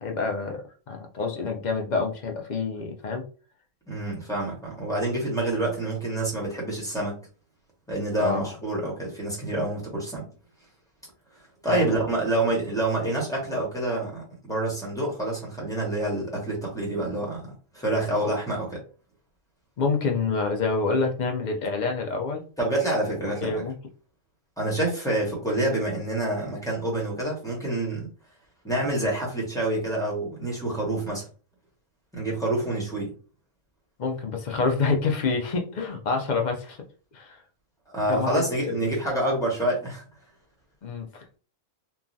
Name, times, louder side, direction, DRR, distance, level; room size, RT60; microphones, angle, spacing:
voice 1, 0.0-3.2 8.2-8.5 11.7-12.0 18.2-18.3 19.8-22.4 23.4-23.7 34.0-36.8 37.1-37.4 38.1-38.4 38.8-38.9 40.8-41.2, left 4 dB, 55° left, 3 dB, 0.5 m, -27 dB
voice 2, 3.9-7.2 7.9-10.3 11.6-18.8 22.6-23.5 24.6-28.1 28.6-31.2 32.1-33.1 37.9-40.0, right 1 dB, 5° left, -4 dB, 1.0 m, -27 dB
3.1 x 2.3 x 2.5 m, 0.38 s
omnidirectional pair, 1.3 m